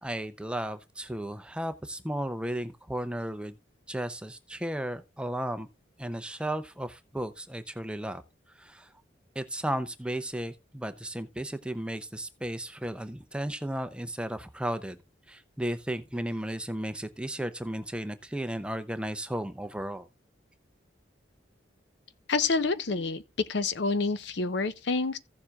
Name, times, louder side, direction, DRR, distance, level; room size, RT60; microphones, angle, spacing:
voice 1, 0.0-3.6 3.9-5.7 6.0-8.2 8.6-8.9 9.4-15.0 15.3-20.1, right 1 dB, 5° right, 0.5 m, -34 dB
voice 2, 22.3-23.2 23.5-25.2, left 3 dB, 65° left, 0.7 m, -28 dB
15.5 x 7.2 x 2.3 m
head